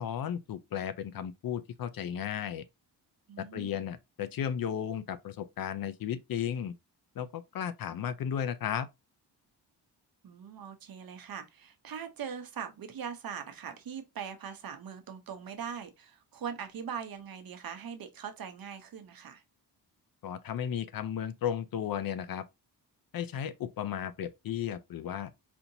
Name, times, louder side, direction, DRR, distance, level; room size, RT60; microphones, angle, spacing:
voice 1, 0.0-2.6 3.4-6.8 7.2-8.9 20.2-22.4 23.1-25.3, left 9 dB, 55° left, 0.5 m, -34 dB
voice 2, 3.3-3.9 10.2-19.4, right 7 dB, 55° right, 0.8 m, -41 dB
4.3 x 2.8 x 2.6 m
wide cardioid pair, 130°, 42 cm